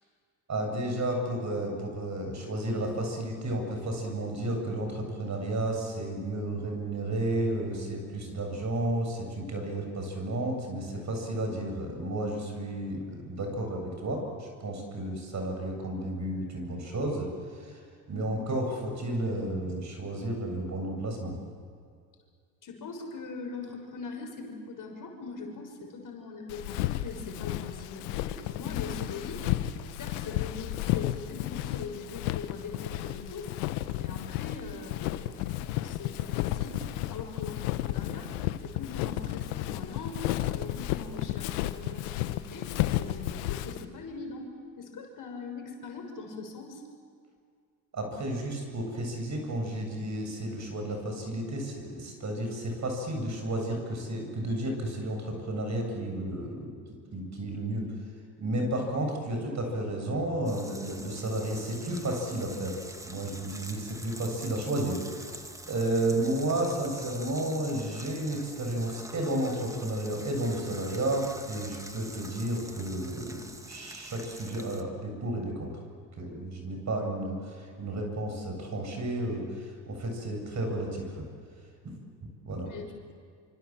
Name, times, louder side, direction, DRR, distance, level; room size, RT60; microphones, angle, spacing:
voice 1, 0.5-17.8 18.1-21.3 47.9-56.7 57.1-57.9 58.4-62.8 63.0-65.4 65.7-75.7 76.2-81.2 81.8-81.9 82.4-82.7, right 1 dB, 35° right, 3 dB, 7.9 m, -32 dB
voice 2, 22.6-29.4 30.0-33.5 33.9-36.8 37.1-38.3 38.6-42.7 43.0-44.5 44.8-46.8 82.6-83.1, left 4 dB, 45° left, 2 dB, 6.4 m, -41 dB
Walk footsteps, 26.5-43.8, left 14 dB, 75° left, 1.3 m, -33 dB
sound 1, 60.5-74.8, right 1 dB, 5° right, 2.1 m, -45 dB
27.5 x 25.0 x 7.6 m, 2.1 s
hypercardioid pair, 75°, 46 cm